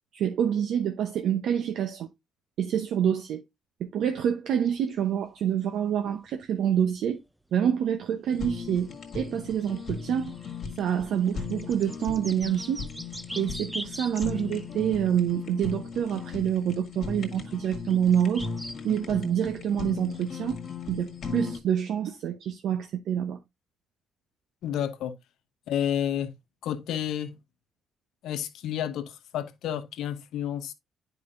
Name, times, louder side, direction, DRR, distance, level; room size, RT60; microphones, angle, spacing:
voice 1, 0.1-2.1 2.6-3.4 3.8-7.2 7.5-8.9 9.1-10.3 10.8-12.8 13.4-18.5 18.8-20.6 20.9-23.4, right 9 dB, 75° right, 0.8 m, -27 dB
sound 1, 4.7-5.0 6.0-6.1 8.3-8.4 8.6-8.7 8.9-14.9 16.5-16.6 17.9-18.8 19.4-19.5, equal, 5° right, 0.5 m, -42 dB
Fire, 8.3-21.6, left 5 dB, 60° left, 1.6 m, -37 dB
voice 2, 24.6-25.2 25.7-26.3 26.6-27.3 28.2-30.7, left 10 dB, 80° left, 0.9 m, -30 dB
9.7 x 4.9 x 2.5 m
cardioid pair, 85°, 0 cm